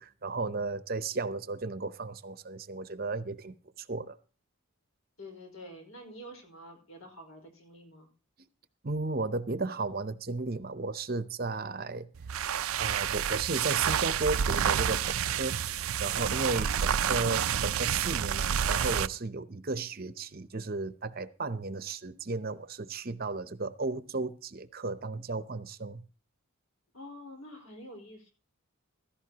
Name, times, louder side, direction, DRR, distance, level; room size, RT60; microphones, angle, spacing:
voice 1, 0.0-4.2 8.4-8.5 8.8-12.1 12.7-15.6 16.0-26.0, right 3 dB, 45° right, 0.8 m, -34 dB
voice 2, 5.2-8.1 16.5-17.2 26.9-28.3, equal, 75° left, 4.9 m, -47 dB
sound 1, 12.2-19.2, right 9 dB, 80° right, 0.5 m, -29 dB
16.0 x 13.5 x 2.9 m
head